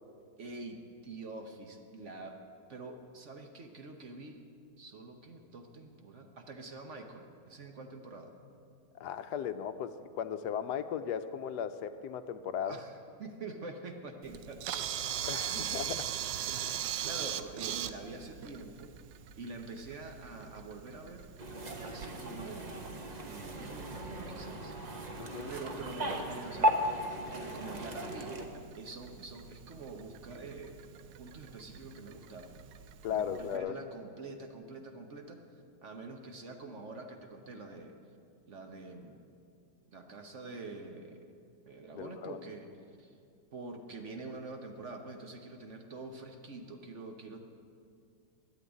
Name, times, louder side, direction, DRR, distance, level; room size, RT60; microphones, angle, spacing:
voice 1, 0.4-2.4 2.7-4.4 4.8-8.3 12.6-14.9 15.2-15.9 16.4-18.9 19.4-21.3 21.8-23.0 23.3-24.7 25.5-27.0 27.3-28.4 28.8-30.8 31.2-32.5 33.1-37.9 38.4-39.2 39.9-41.2 41.6-42.7 43.0-43.2 43.5-47.4, right 3 dB, 50° right, 5 dB, 1.1 m, -46 dB
voice 2, 9.0-12.8 15.3-16.1 25.2-25.5 33.0-33.8 41.9-42.4, left 8 dB, 75° left, 10 dB, 1.1 m, -36 dB
Camera, 14.2-33.6, right 10 dB, 80° right, 1.2 m, -42 dB
sound 1, 21.4-28.5, equal, 30° right, 1.0 m, -36 dB
12.0 x 8.7 x 9.4 m, 2.4 s
omnidirectional pair, 1.9 m